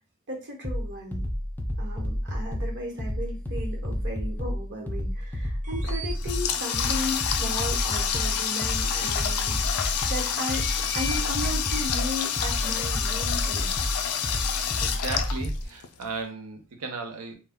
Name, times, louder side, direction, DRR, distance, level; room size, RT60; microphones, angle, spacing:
voice 1, 0.3-1.3 1.8-13.7, left 1 dB, 55° right, -1 dB, 1.0 m, -35 dB
sound 1, 0.6-15.7, equal, 10° left, 0.3 m, -31 dB
sound 2, 5.6-6.1 6.7-6.8 7.1-7.2 7.7-8.1 8.8-8.9 9.2-9.3 10.3-11.8, equal, 35° right, 0.7 m, -39 dB
Water tap faucet, 5.8-16.0, left 8 dB, 80° left, 0.4 m, -28 dB
voice 2, 14.6-17.4, right 4 dB, 85° right, 4 dB, 0.6 m, -36 dB
2.2 x 2.1 x 3.5 m, 0.32 s
head